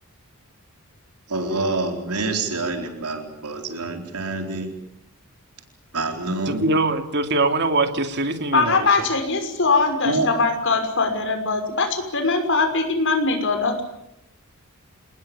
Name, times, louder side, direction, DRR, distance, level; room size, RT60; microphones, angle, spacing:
voice 1, 1.3-4.7 5.9-6.6 10.0-10.3, right 3 dB, 90° right, 4 dB, 4.1 m, -26 dB
voice 2, 6.5-8.9, right 2 dB, 50° right, 7 dB, 2.7 m, -22 dB
voice 3, 8.5-13.8, left 3 dB, 55° left, 6 dB, 6.1 m, -21 dB
28.0 x 20.0 x 8.9 m, 0.83 s
head